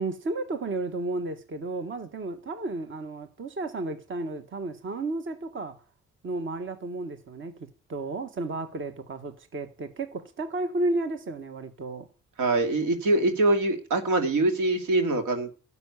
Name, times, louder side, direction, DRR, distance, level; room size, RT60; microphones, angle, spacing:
voice 1, 0.0-5.8 6.2-12.1, right 2 dB, 40° right, 1.5 m, -33 dB
voice 2, 12.4-15.5, right 2 dB, 80° right, 2.7 m, -24 dB
12.0 x 7.0 x 9.8 m
cardioid pair, 90°, 30 cm